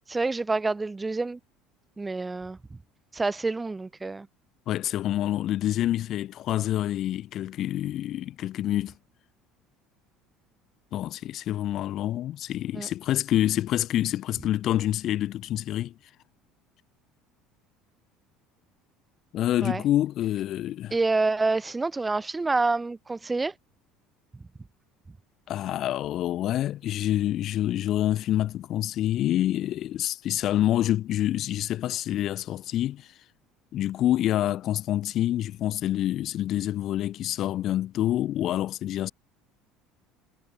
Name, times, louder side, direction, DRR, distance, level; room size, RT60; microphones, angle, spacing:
voice 1, 0.1-1.4 2.0-2.8 3.1-4.3 12.7-12.9 19.6-19.8 20.9-23.5, right 3 dB, 20° right, 1.9 m, -27 dB
voice 2, 4.7-8.9 10.9-15.9 19.3-21.0 25.5-33.2 33.7-39.1, left 13 dB, 55° left, 0.5 m, -27 dB
hypercardioid pair, 70°, 0 cm